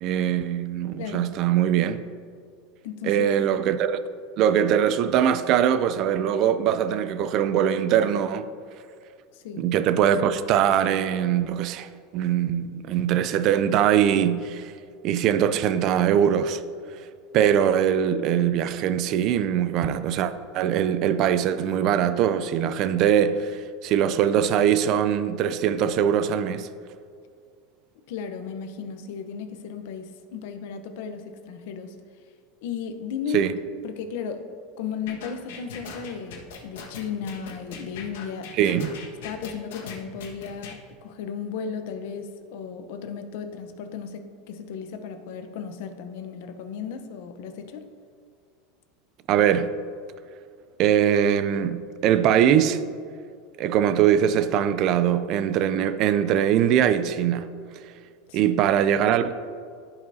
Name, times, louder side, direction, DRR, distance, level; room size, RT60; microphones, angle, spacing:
voice 1, 0.0-2.0 3.0-4.0 4.4-8.5 9.6-14.7 15.0-16.6 17.3-26.7 33.3-33.5 38.6-38.9 49.3-49.7 50.8-52.8 53.6-57.5 58.3-59.3, right 9 dB, 40° right, 0.4 m, -22 dB
voice 2, 1.0-1.3 2.8-3.3 9.3-9.7 28.1-32.0 32.6-33.5 33.8-34.4 34.8-38.5 39.2-47.9 58.3-58.6, left 7 dB, 65° left, 0.8 m, -35 dB
sound 1, 35.1-40.8, left 6 dB, 85° left, 1.5 m, -40 dB
14.5 x 5.4 x 2.7 m
supercardioid pair, 165°, 0 cm